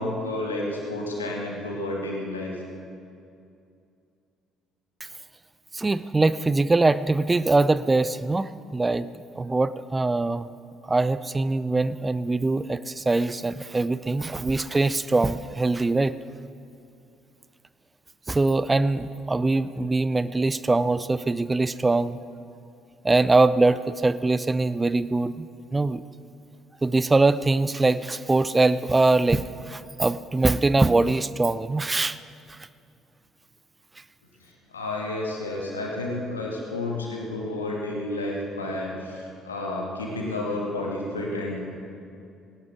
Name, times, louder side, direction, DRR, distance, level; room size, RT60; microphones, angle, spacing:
voice 1, 0.0-2.5 34.4-41.6, left 2 dB, 80° left, -2 dB, 2.3 m, -31 dB
voice 2, 5.7-9.1 9.4-10.5 10.9-16.1 18.3-22.2 23.0-26.0 26.8-32.2, right 3 dB, 20° right, 15 dB, 0.5 m, -23 dB
19.0 x 18.0 x 3.7 m, 2.5 s
figure-of-eight pair, 50°, 0 cm